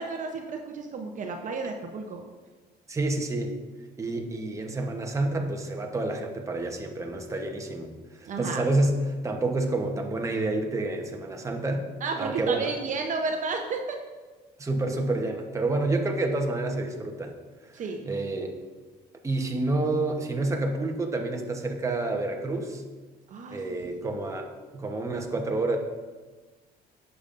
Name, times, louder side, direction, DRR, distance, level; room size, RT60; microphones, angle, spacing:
voice 1, 0.0-2.2 8.2-8.6 12.0-14.0 17.7-18.1 23.3-23.6 24.0-24.1, right 4 dB, 50° right, 3 dB, 0.7 m, -32 dB
voice 2, 2.9-3.6 4.0-7.9 8.2-9.0 9.2-11.9 12.2-12.7 14.6-17.3 17.7-18.5 19.2-22.8 23.5-25.8, right 2 dB, 20° right, 2 dB, 1.0 m, -28 dB
10.5 x 6.9 x 2.5 m, 1.3 s
cardioid pair, 110°, 17 cm